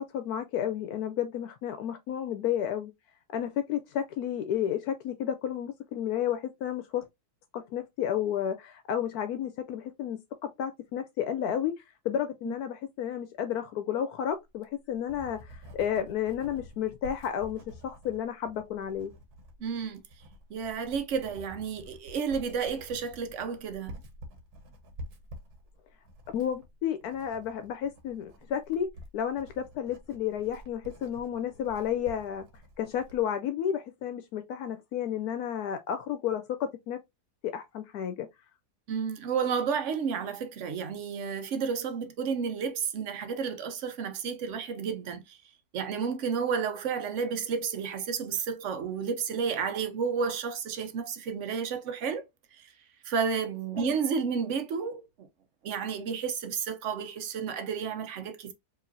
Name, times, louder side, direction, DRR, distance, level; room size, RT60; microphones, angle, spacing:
voice 1, 0.0-2.9 3.3-7.0 7.5-11.7 12.0-19.1 26.3-28.9 29.1-32.4 32.8-37.0 37.4-38.3 53.8-53.9, left 9 dB, 80° left, 1.1 m, -32 dB
Writing, 14.5-33.2, equal, 80° right, 1.5 m, -49 dB
voice 2, 19.6-20.0 20.5-24.0 38.9-45.4 45.7-52.2 52.6-52.7 53.0-55.1 55.6-58.5, right 6 dB, 60° right, 1.0 m, -31 dB
4.9 x 3.0 x 2.6 m
omnidirectional pair, 1.6 m